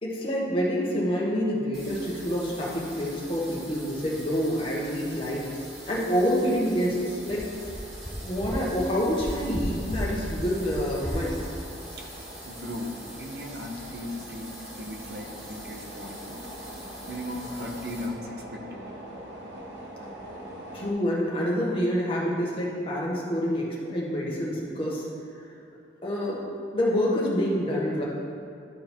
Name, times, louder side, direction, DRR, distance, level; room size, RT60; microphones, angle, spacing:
voice 1, 0.0-5.5 5.8-7.4 8.2-11.3 20.7-25.0 26.0-26.4 26.7-28.0, equal, 30° left, -5 dB, 1.4 m, -27 dB
sound 1, 1.7-18.1, right 1 dB, 35° right, 1.9 m, -44 dB
sound 2, 6.7-20.9, right 1 dB, 90° right, 1.1 m, -45 dB
sound 3, 7.3-7.4 7.7-7.8 8.0-8.1 8.4-8.5 8.8-8.9 9.2-9.6 9.9-10.0 10.3-10.4 10.7-10.8 11.0-11.1, equal, 10° left, 0.8 m, -34 dB
voice 2, 12.4-16.5 17.1-18.9, left 1 dB, 60° right, 1 dB, 0.9 m, -37 dB
11.5 x 3.8 x 4.5 m, 2.5 s
head